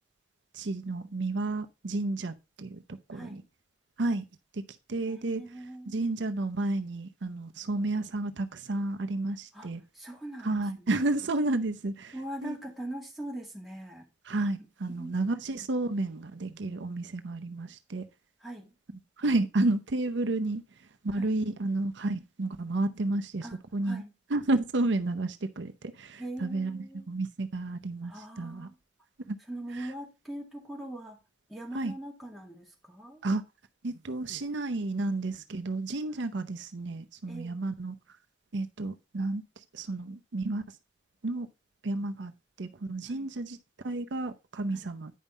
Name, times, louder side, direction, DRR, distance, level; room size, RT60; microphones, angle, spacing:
voice 1, 0.5-2.8 3.1-3.4 4.0-4.2 4.5-4.6 4.9-5.4 5.9-9.8 10.4-12.2 12.4-12.6 14.3-18.0 19.2-24.0 24.3-28.7 29.3-29.4 29.8-29.9 31.7-31.9 33.2-33.4 33.8-37.9 38.5-40.6 41.2-41.5 41.8-42.3 42.6-43.6 43.8-45.1, right 2 dB, 70° right, 0.7 m, -31 dB
voice 2, 3.1-3.5 5.1-6.1 9.5-9.7 9.9-11.0 12.1-14.1 14.9-15.1 18.4-18.7 21.1-21.4 23.4-23.6 23.8-24.1 26.2-27.1 28.0-28.8 29.5-31.2 31.5-33.2 37.2-37.6 43.1-43.3 44.7-44.9, right 1 dB, ahead, 2.0 m, -42 dB
9.4 x 5.5 x 4.1 m
head